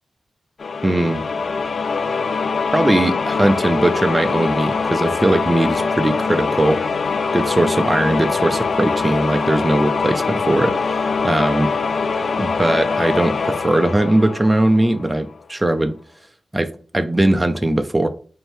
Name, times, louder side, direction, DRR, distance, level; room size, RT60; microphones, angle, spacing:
sound 1, 0.6-15.2, left 4 dB, 60° left, 0.3 m, -23 dB
voice 1, 0.8-1.2 2.7-6.8 7.3-11.7 12.4-15.9 16.5-16.7 16.9-18.1, right 1 dB, 15° right, 0.4 m, -19 dB
4.1 x 2.7 x 3.3 m
wide cardioid pair, 90°, 0 cm